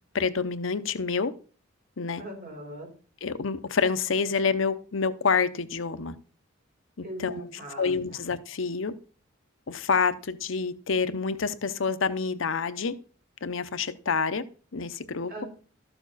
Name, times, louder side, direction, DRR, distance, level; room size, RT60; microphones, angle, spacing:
voice 1, 0.1-1.3 2.0-2.2 3.2-6.2 7.2-7.4 7.8-8.9 9.7-12.9 13.4-14.4 14.7-15.5, left 5 dB, 75° left, 0.7 m, -27 dB
voice 2, 2.2-2.9 7.0-8.2 15.3-15.5, right 1 dB, 50° right, 4.4 m, -40 dB
13.0 x 7.0 x 4.1 m
head